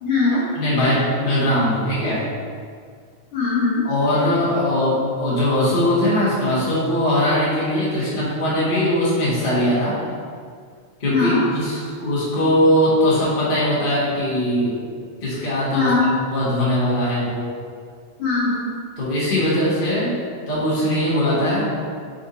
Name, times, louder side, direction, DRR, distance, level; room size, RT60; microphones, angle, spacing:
voice 1, 0.0-0.5 3.3-3.9 11.1-11.4 15.7-16.1 18.2-18.7, left 3 dB, 55° left, -8 dB, 1.9 m, -20 dB
voice 2, 0.5-2.3 3.8-10.0 11.0-14.8 15.2-15.9 16.3-17.5 19.0-20.2 20.5-21.7, left 1 dB, 25° left, -9 dB, 1.1 m, -20 dB
5.5 x 4.8 x 4.0 m, 2.1 s
omnidirectional pair, 3.5 m